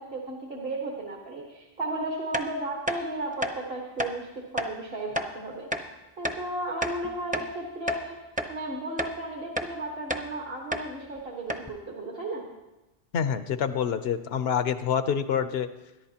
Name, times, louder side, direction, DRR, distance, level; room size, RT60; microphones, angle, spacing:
voice 1, 0.0-5.7 6.2-8.2 8.5-12.4, right 2 dB, 60° right, -1 dB, 1.7 m, -34 dB
sound 1, 2.3-2.5 2.9-3.0 3.4-3.6 4.0-4.1 4.6-4.7 5.2-5.3 5.7-5.9 6.2-6.4 6.8-7.5 7.9-8.0 8.4-8.5 9.0-9.2 9.6-9.7 10.1-10.3 10.7-10.9 11.2-11.3 11.5-11.7, equal, 10° right, 0.7 m, -30 dB
voice 2, 13.1-15.7, left 7 dB, 75° left, 11 dB, 1.0 m, -27 dB
22.0 x 11.0 x 2.9 m, 1.0 s
omnidirectional pair, 1.1 m